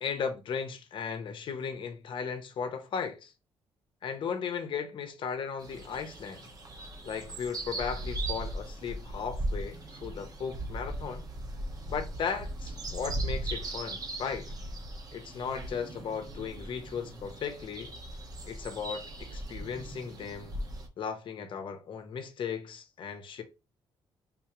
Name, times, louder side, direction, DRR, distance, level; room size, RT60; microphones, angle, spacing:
voice 1, 0.0-3.3 4.0-6.5 7.0-11.3 11.9-14.5 15.1-17.9 18.5-20.5 21.0-23.4, left 6 dB, 60° left, 0.7 m, -36 dB
sound 1, 5.6-20.9, right 1 dB, 40° right, 0.8 m, -38 dB
3.7 x 2.4 x 2.9 m
cardioid pair, 85°, 10 cm